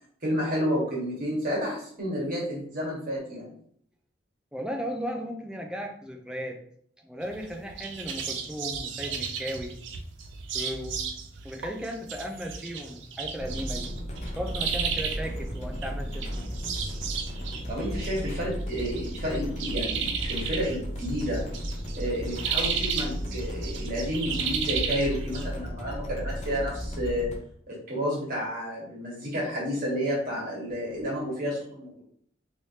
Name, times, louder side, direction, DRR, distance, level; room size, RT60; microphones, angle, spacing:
voice 1, 0.2-3.5 17.7-21.4 22.0-27.3 27.7-32.0, equal, 45° right, -4 dB, 1.5 m, -30 dB
voice 2, 4.5-6.6 7.0-9.8 10.5-11.1 11.4-13.9 14.4-16.5, equal, 5° right, 1 dB, 0.5 m, -36 dB
sound 1, 7.2-25.6, right 6 dB, 65° right, 0.4 m, -34 dB
sound 2, 13.4-27.4, equal, 35° left, 0.7 m, -35 dB
3.3 x 3.2 x 2.8 m, 0.63 s
head